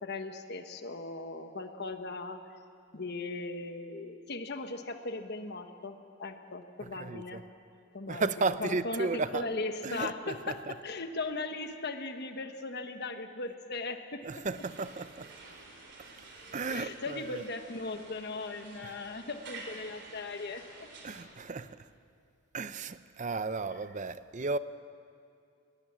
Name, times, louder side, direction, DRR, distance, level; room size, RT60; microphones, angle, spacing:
voice 1, 0.0-2.4 2.9-7.4 7.9-10.6 10.8-14.2 16.7-20.9, left 3 dB, 50° left, 1.3 m, -38 dB
voice 2, 6.8-7.4 8.1-9.5 9.8-10.7 14.2-15.3 16.0-16.1 16.5-17.4 18.8-18.9 21.0-21.9 22.5-24.6, right 3 dB, 35° right, 0.6 m, -34 dB
sound 1, 14.5-21.2, right 3 dB, 55° right, 3.5 m, -50 dB
21.0 x 20.0 x 7.5 m
head